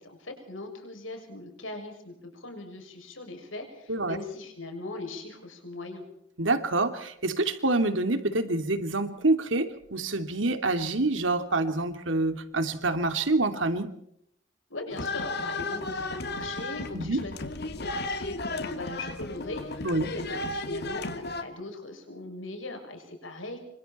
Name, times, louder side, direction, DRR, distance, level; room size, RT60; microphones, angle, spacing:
voice 1, 0.0-6.0 14.7-17.4 17.7-23.6, left 2 dB, 85° left, 4 dB, 6.7 m, -40 dB
voice 2, 6.4-13.9 16.9-17.2 19.8-20.1, right 2 dB, 75° right, 8 dB, 2.8 m, -27 dB
sound 1, 14.9-21.4, left 2 dB, 55° left, 2.4 m, -34 dB
27.5 x 25.5 x 4.4 m, 0.73 s
head